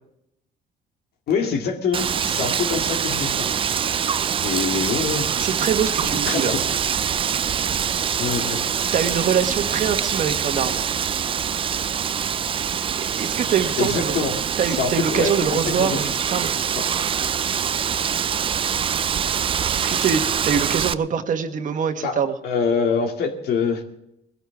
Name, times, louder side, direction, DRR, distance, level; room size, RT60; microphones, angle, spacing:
voice 1, 1.3-3.6 4.4-5.7 6.0-6.7 8.2-8.6 13.8-14.4 14.6-16.0 16.8-16.9 22.0-22.2 22.4-23.8, left 5 dB, 65° left, 3 dB, 2.3 m, -25 dB
Wind, 1.9-20.9, right 8 dB, 30° right, 0.4 m, -24 dB
voice 2, 5.4-6.5 8.9-10.8 13.0-14.3 14.6-16.5 19.7-22.3, right 7 dB, 50° right, 7 dB, 1.4 m, -24 dB
20.0 x 13.5 x 3.5 m, 0.81 s
cardioid pair, 110°, 17 cm